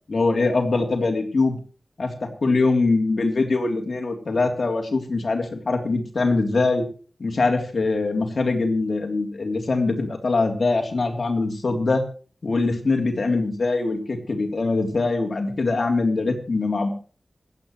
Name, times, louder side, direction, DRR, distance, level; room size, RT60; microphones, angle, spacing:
voice 1, 0.1-1.6 2.0-6.8 7.2-12.0 12.4-16.9, left 3 dB, 70° left, 3 dB, 3.3 m, -23 dB
26.5 x 9.2 x 3.2 m, 0.39 s
cardioid pair, 40°, 0 cm